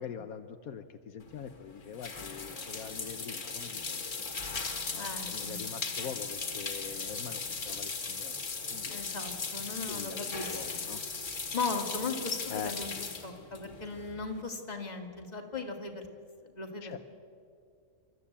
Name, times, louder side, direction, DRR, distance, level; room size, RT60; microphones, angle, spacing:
voice 1, 0.0-4.0 4.9-8.4 8.7-9.0 9.7-11.0 12.5-12.7 16.8-17.0, left 7 dB, 75° left, 8 dB, 1.3 m, -43 dB
sound 1, 1.2-14.4, left 4 dB, 60° left, 2.2 m, -38 dB
voice 2, 4.9-5.6 6.0-6.1 8.9-10.8 11.5-12.9 13.2-16.0 16.5-17.0, left 4 dB, 30° left, 3 dB, 2.2 m, -37 dB
28.0 x 13.0 x 8.6 m, 2.3 s
omnidirectional pair, 1.5 m